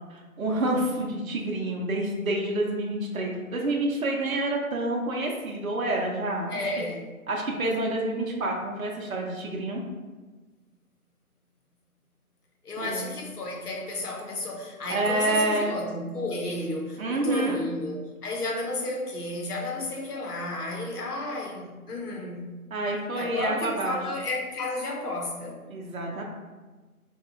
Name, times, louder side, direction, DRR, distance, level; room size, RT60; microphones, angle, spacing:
voice 1, 0.1-6.6 7.3-9.8 12.8-13.1 14.9-15.8 17.0-17.6 22.7-24.0 25.7-26.2, right 2 dB, 65° right, 0 dB, 0.6 m, -28 dB
voice 2, 6.5-7.0 12.6-18.0 18.2-22.5 23.1-25.6, left 2 dB, 80° left, -1 dB, 0.8 m, -32 dB
2.8 x 2.3 x 2.4 m, 1.3 s
figure-of-eight pair, 170°, 45 cm